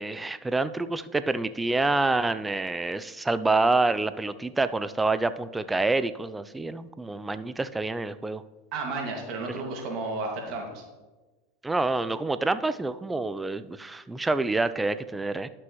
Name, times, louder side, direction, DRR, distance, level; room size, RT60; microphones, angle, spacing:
voice 1, 0.0-8.4 9.5-9.6 11.6-15.5, right 3 dB, 10° right, 13 dB, 0.4 m, -27 dB
voice 2, 8.7-10.8, right 3 dB, 50° right, 0 dB, 2.0 m, -32 dB
11.5 x 6.0 x 3.1 m, 1.2 s
supercardioid pair, 110°, 0 cm